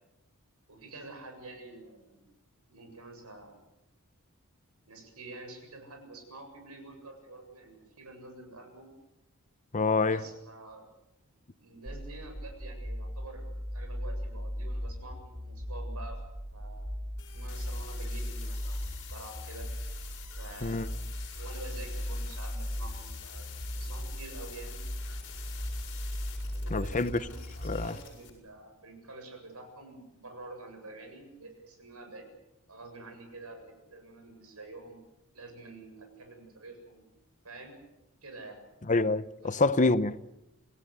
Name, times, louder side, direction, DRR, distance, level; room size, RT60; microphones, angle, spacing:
voice 1, 0.7-2.2 2.7-3.6 4.9-8.9 10.1-10.9 11.6-16.2 16.5-17.0 17.3-19.7 20.4-20.8 21.3-25.3 26.5-32.3 32.7-35.0 35.3-37.0 37.4-37.8 38.2-38.6 39.4-39.6, right 2 dB, 75° right, 7.6 m, -48 dB
voice 2, 9.7-10.2 20.6-20.9 26.7-27.1 27.6-27.9 38.9-40.2, left 3 dB, 35° left, 0.9 m, -26 dB
sound 1, 11.9-27.9, equal, 25° right, 4.6 m, -37 dB
sound 2, 17.2-28.3, left 8 dB, 60° left, 7.4 m, -48 dB
28.0 x 18.0 x 8.2 m
head